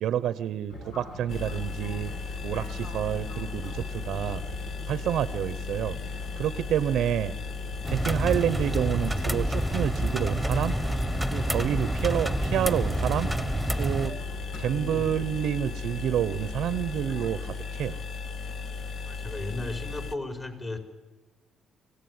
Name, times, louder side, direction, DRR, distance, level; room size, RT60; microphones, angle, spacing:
voice 1, 0.0-4.4 4.9-6.0 6.4-7.4 7.9-10.8 11.3-13.3 13.8-14.2 14.6-18.0, right 10 dB, 80° right, 15 dB, 0.8 m, -28 dB
Fixed-wing aircraft airplane, 0.7-17.6, equal, 85° left, 6.8 m, -43 dB
sound 1, 1.3-20.1, left 5 dB, 55° left, 1.0 m, -36 dB
sound 2, 7.8-14.1, right 1 dB, ahead, 1.5 m, -28 dB
voice 2, 14.6-15.1 19.0-20.8, left 2 dB, 30° left, 6 dB, 4.7 m, -36 dB
25.5 x 17.0 x 9.5 m, 1.2 s
cardioid pair, 90°, 0 cm